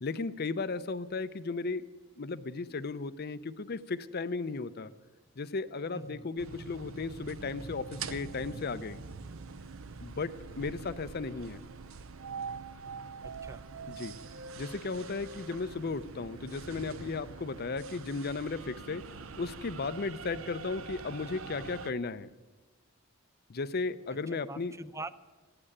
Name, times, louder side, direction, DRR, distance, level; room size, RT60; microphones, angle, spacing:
voice 1, 0.0-1.8 2.2-4.9 5.4-9.0 10.0-11.6 13.9-14.2 14.6-19.0 19.4-22.3 23.5-24.7, left 4 dB, 50° left, 13 dB, 0.6 m, -35 dB
voice 2, 5.9-6.3 13.2-13.6 24.3-25.2, right 2 dB, 15° right, 15 dB, 0.5 m, -44 dB
sound 1, 6.4-21.9, right 5 dB, 85° right, 0.7 m, -44 dB
14.5 x 8.9 x 9.9 m, 1.3 s
head